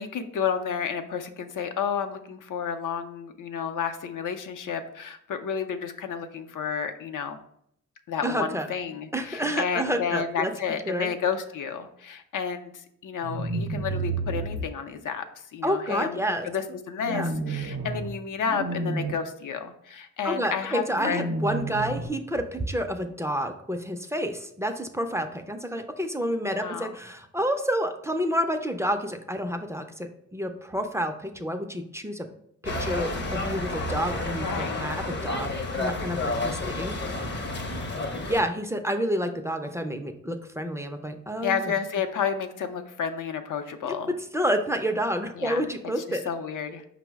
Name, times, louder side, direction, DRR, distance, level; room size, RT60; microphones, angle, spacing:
voice 1, 0.0-7.4 8.1-21.4 26.4-27.0 34.3-34.8 41.4-44.1 45.4-45.6 46.0-46.8, left 7 dB, 80° left, 6 dB, 0.5 m, -31 dB
voice 2, 8.2-8.7 9.1-10.5 10.9-11.1 15.6-16.5 17.1-17.3 20.2-32.3 32.8-37.3 38.3-41.7 43.8-43.9 44.3-46.2, equal, 10° right, 6 dB, 0.3 m, -29 dB
sound 1, 13.2-14.6 17.0-18.1 18.4-19.1 20.9-22.1, right 3 dB, 70° right, 0.6 m, -30 dB
sound 2, 32.7-38.4, left 2 dB, 35° left, 0.6 m, -30 dB
5.4 x 2.0 x 4.5 m, 0.71 s
wide cardioid pair, 95°, 31 cm